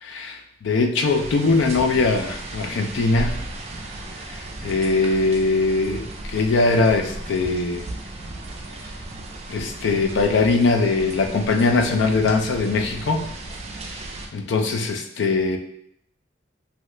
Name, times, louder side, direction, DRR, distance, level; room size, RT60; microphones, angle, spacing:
voice 1, 0.0-3.4 4.3-6.0 6.3-7.9 9.5-13.2 14.0-14.1 14.3-15.6, left 3 dB, 65° left, 5 dB, 0.4 m, -21 dB
sound 1, 1.1-14.3, right 2 dB, 35° right, 0.4 m, -35 dB
2.8 x 2.3 x 3.1 m, 0.73 s
head